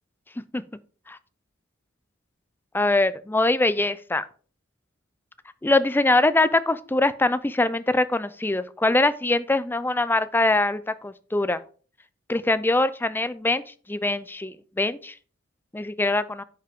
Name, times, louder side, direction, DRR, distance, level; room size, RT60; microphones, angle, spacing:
voice 1, 2.7-4.2 5.6-11.6 12.3-13.6 13.9-15.1 15.7-16.4, left 2 dB, 10° left, 0.4 m, -23 dB
9.9 x 5.7 x 3.6 m
head